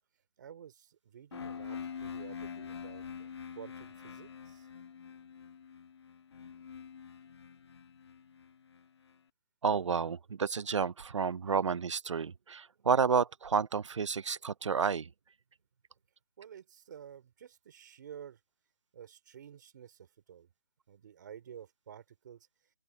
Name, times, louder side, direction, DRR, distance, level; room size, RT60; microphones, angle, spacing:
voice 1, 0.4-3.3 3.6-4.7 16.4-18.4 18.9-20.5 20.9-22.5, right 9 dB, 30° right, 3.8 m, -51 dB
sound 1, 1.3-9.1, left 7 dB, 40° left, 1.4 m, -45 dB
voice 2, 9.6-15.1, right 6 dB, 50° right, 0.5 m, -30 dB
open air
hypercardioid pair, 175°, 20 cm